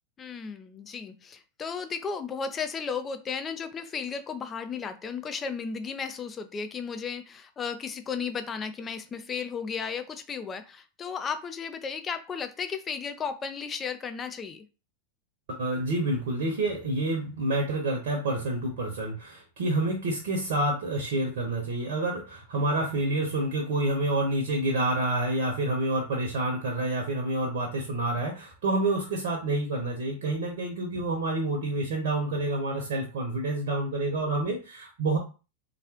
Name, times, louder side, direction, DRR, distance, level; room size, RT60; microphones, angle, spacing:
voice 1, 0.2-14.7, left 6 dB, 20° left, 9 dB, 0.5 m, -34 dB
voice 2, 15.5-35.2, right 2 dB, 55° right, 1 dB, 1.0 m, -28 dB
3.6 x 3.1 x 2.9 m, 0.33 s
figure-of-eight pair, 90°, 0 cm